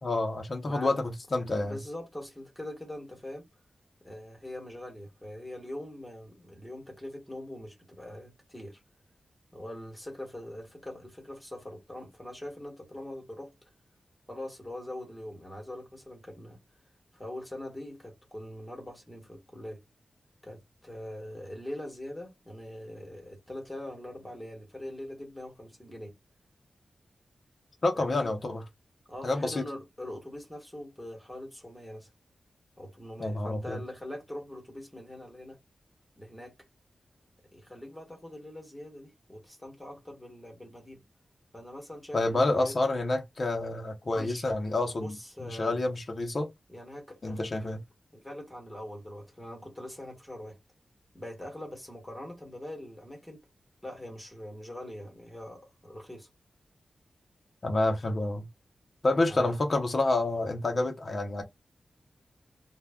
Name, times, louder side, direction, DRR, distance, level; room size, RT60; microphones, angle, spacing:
voice 1, 0.0-1.8 27.8-28.6 29.2-29.6 33.2-33.8 42.1-45.2 45.4-46.5 47.2-47.8 57.6-58.5 59.0-61.4, left 2 dB, 40° left, 0.5 m, -28 dB
voice 2, 1.6-3.5 4.0-8.8 9.5-13.5 14.3-16.6 17.1-19.8 20.4-26.1 27.9-28.3 29.1-32.1 32.8-35.6 36.2-36.5 37.5-41.0 41.5-42.7 44.1-44.4 44.9-45.8 46.7-47.8 48.1-50.6 51.1-53.4 53.8-56.3 59.3-59.6, left 1 dB, 10° left, 1.0 m, -42 dB
2.1 x 2.0 x 3.4 m
wide cardioid pair, 135°, 0 cm